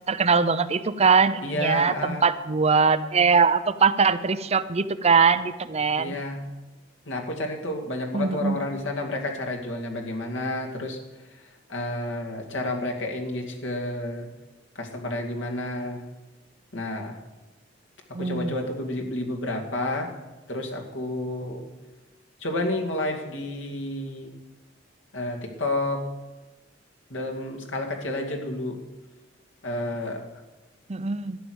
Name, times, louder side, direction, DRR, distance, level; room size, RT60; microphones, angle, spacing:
voice 1, 0.1-6.2 8.1-8.6 18.1-18.5 30.9-31.4, right 5 dB, 35° right, 12 dB, 0.6 m, -22 dB
voice 2, 1.4-2.2 5.9-6.4 7.1-11.0 11.7-14.3 14.8-16.0 16.7-17.2 18.2-20.1 20.5-21.7 22.4-24.3 25.1-26.1 27.1-28.8 29.6-30.3, left 1 dB, 85° left, 1 dB, 2.4 m, -30 dB
12.5 x 10.5 x 8.0 m, 1.1 s
head